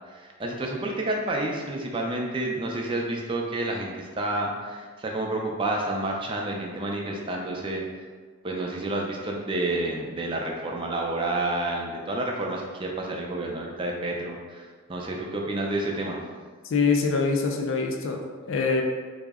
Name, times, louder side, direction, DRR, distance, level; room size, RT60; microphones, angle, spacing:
voice 1, 0.0-7.8 8.4-16.2, right 2 dB, 25° right, 0 dB, 0.4 m, -29 dB
voice 2, 16.7-18.8, left 4 dB, 80° left, 2 dB, 0.4 m, -24 dB
3.6 x 2.0 x 3.5 m, 1.5 s
head